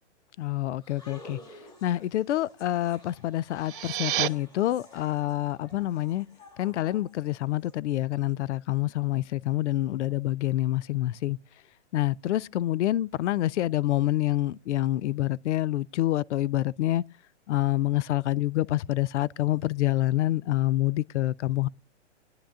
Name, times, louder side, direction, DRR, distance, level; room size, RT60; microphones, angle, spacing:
voice 1, 0.4-1.4 1.8-6.3 6.6-11.4 11.9-17.0 17.5-21.7, left 15 dB, 75° left, 0.5 m, -27 dB
sound 1, 0.8-7.7, left 1 dB, 10° left, 1.9 m, -52 dB
sound 2, 3.5-4.3, right 13 dB, 50° right, 0.5 m, -29 dB
22.0 x 10.5 x 2.4 m
hypercardioid pair, 155°, 36 cm